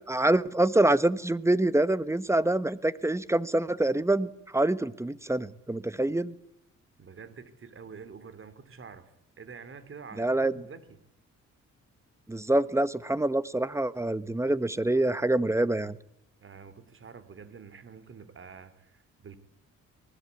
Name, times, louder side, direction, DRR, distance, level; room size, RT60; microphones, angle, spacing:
voice 1, 0.1-6.3 10.2-10.5 12.3-16.0, right 1 dB, 10° right, 16 dB, 1.2 m, -26 dB
voice 2, 7.0-10.8 16.4-19.4, right 5 dB, 45° right, 13 dB, 3.5 m, -47 dB
25.0 x 19.5 x 8.5 m, 0.78 s
cardioid pair, 90°, 30 cm